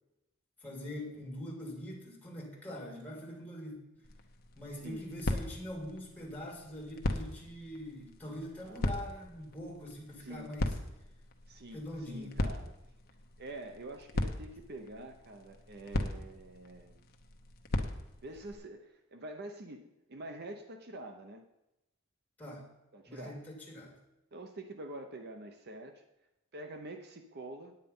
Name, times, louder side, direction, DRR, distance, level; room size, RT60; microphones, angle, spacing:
voice 1, 0.6-4.1 4.6-10.8 11.7-12.3 22.4-22.7 23.1-23.9, equal, 10° left, -2 dB, 2.9 m, -43 dB
sound 1, 4.0-18.5, left 1 dB, 45° left, 1.0 m, -39 dB
voice 2, 8.6-8.9 10.2-10.5 11.5-12.7 13.4-17.1 18.2-19.8 20.1-21.4 22.9-23.4 24.3-26.0 26.5-27.8, right 1 dB, 50° right, 6 dB, 0.8 m, -46 dB
9.2 x 9.0 x 5.4 m, 0.92 s
head